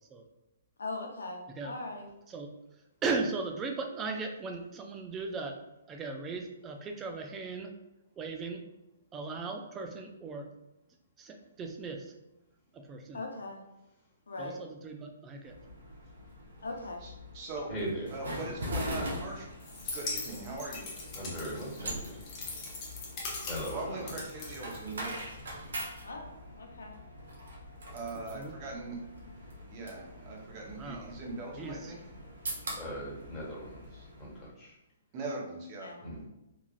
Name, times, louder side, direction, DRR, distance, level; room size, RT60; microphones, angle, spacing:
voice 1, 0.8-2.1 13.1-13.6 14.3-14.6 16.6-17.0 26.0-27.0 35.8-36.2, left 2 dB, 85° left, 1 dB, 0.7 m, -40 dB
voice 2, 3.0-5.6 5.9-7.8 8.2-8.7 9.1-10.5 11.2-12.1 12.7-13.2 14.4-15.5 28.1-28.5 30.8-31.1 31.6-31.9, right 4 dB, 20° right, 4 dB, 0.4 m, -37 dB
sound 1, 15.4-34.5, equal, 75° right, 0.8 m, -43 dB
voice 3, 17.0-17.7 18.1-19.5 19.9-20.9 23.7-25.2 27.9-29.0 29.7-32.0 35.1-35.9, right 2 dB, 35° right, -1 dB, 0.9 m, -40 dB
voice 4, 17.7-18.1 21.1-22.2 23.5-24.1 32.8-34.7 36.0-36.2, equal, 15° left, -6 dB, 1.4 m, -39 dB
sound 2, 19.6-25.3, left 3 dB, 30° left, 0.7 m, -41 dB
3.2 x 2.4 x 2.3 m, 0.94 s
hypercardioid pair, 140°, 0 cm